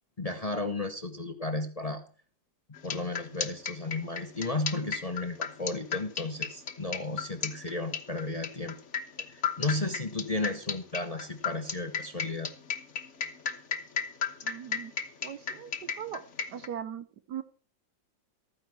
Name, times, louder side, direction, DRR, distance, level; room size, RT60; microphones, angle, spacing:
voice 1, 0.2-2.0 2.8-8.8 9.2-12.5, left 2 dB, 25° left, 8 dB, 0.9 m, -34 dB
sound 1, 2.7-16.7, left 7 dB, 45° left, 1.3 m, -34 dB
voice 2, 14.4-14.9 15.2-16.2 16.5-17.4, right 9 dB, 70° right, 12 dB, 1.3 m, -39 dB
14.0 x 9.5 x 4.6 m, 0.40 s
omnidirectional pair, 2.0 m